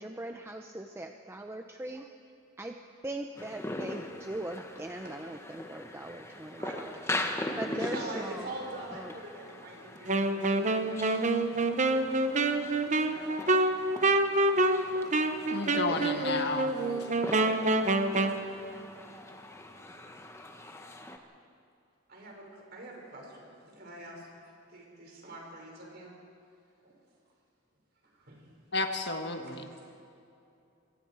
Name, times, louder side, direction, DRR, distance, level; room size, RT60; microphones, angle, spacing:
voice 1, 0.0-2.1 2.6-2.8 3.0-6.6 7.5-8.5 8.9-9.1, right 1 dB, 15° right, 4 dB, 0.7 m, -40 dB
sound 1, 3.4-21.2, left 1 dB, 15° left, 1.3 m, -41 dB
voice 2, 7.7-12.5 13.1-13.6 15.9-18.1 19.3-19.4 22.1-26.1 26.8-27.0 28.1-28.5 29.4-29.9, right 1 dB, 55° right, -1 dB, 5.5 m, -45 dB
Wind instrument woodwind instrument, 10.1-18.4, right 2 dB, 35° right, 1.0 m, -27 dB
voice 3, 15.5-16.7 28.7-29.7, left 3 dB, 55° left, 5 dB, 1.5 m, -32 dB
27.0 x 23.0 x 4.8 m, 2.7 s
head